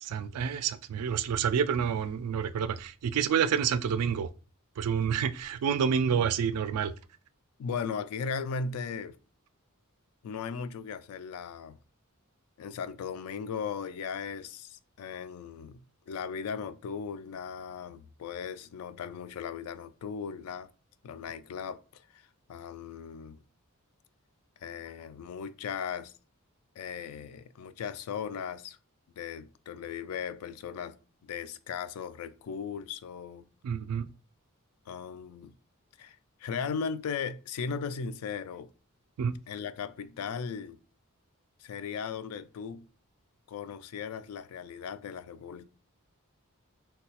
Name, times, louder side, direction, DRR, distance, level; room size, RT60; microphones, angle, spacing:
voice 1, 0.0-4.3 4.8-6.9 33.6-34.1 39.2-39.4, right 7 dB, 85° right, 0.3 m, -28 dB
voice 2, 7.6-9.2 10.2-11.8 12.6-15.8 16.1-20.7 21.0-23.4 24.6-26.1 26.8-28.8 29.2-31.0 31.2-33.5 34.9-35.5 36.0-38.7 39.5-40.8 41.6-42.9 43.5-45.7, left 6 dB, 75° left, 0.3 m, -37 dB
3.7 x 2.3 x 2.8 m
head